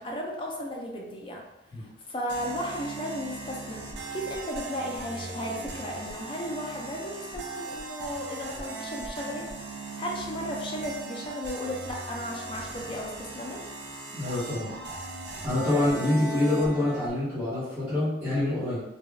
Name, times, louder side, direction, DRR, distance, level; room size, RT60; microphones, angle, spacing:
voice 1, 0.0-1.4 1.8-3.8 4.1-9.5 10.0-13.6, equal, 30° left, -1 dB, 0.4 m, -35 dB
sound 1, 2.3-17.1, right 3 dB, 75° right, 0.6 m, -39 dB
voice 2, 14.1-14.7 15.4-18.8, left 1 dB, 10° right, -15 dB, 1.1 m, -26 dB
3.3 x 2.3 x 2.2 m, 0.97 s
head